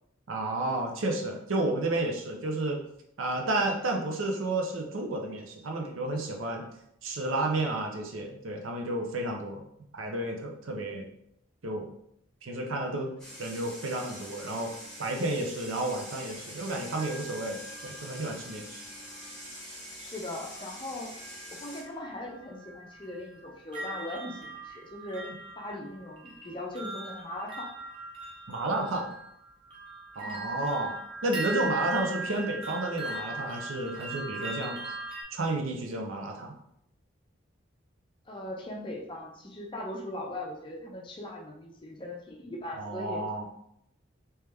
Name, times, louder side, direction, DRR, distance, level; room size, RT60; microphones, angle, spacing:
voice 1, 0.3-2.8 3.2-6.7 7.0-9.6 9.9-11.1 11.6-11.9 12.4-13.1 13.4-18.8 28.5-29.1 30.2-34.8 35.3-36.5 42.8-43.4, right 2 dB, 85° right, 2 dB, 0.6 m, -31 dB
sound 1, 13.2-21.8, equal, 5° left, 1.1 m, -45 dB
sound 2, 16.6-19.3 20.5-20.9 21.2-35.2, right 2 dB, 25° right, 0.8 m, -40 dB
voice 2, 20.0-21.1 21.5-27.7 30.2-30.5 38.3-43.2, left 1 dB, 25° left, 0 dB, 0.6 m, -39 dB
3.3 x 3.0 x 3.3 m, 0.75 s
head